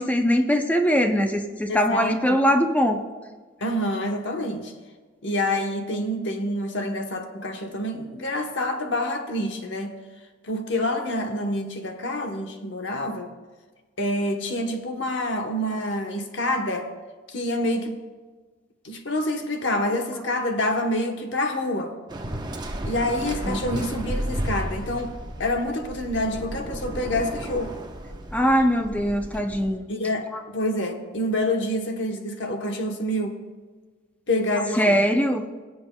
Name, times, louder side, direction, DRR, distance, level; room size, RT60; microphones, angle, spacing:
voice 1, 0.0-3.0 23.4-23.6 28.3-29.9 30.3-30.4 34.7-35.5, equal, 10° left, 5 dB, 0.5 m, -21 dB
voice 2, 1.7-2.4 3.6-4.7 5.2-10.0 10.4-13.3 14.0-16.9 17.3-18.0 18.8-21.9 22.8-27.7 29.9-33.4 34.3-35.0, left 1 dB, 70° left, 4 dB, 1.0 m, -27 dB
Waves surf, 22.1-29.7, right 1 dB, 25° right, 0.8 m, -33 dB
22.5 x 7.9 x 2.2 m, 1.4 s
head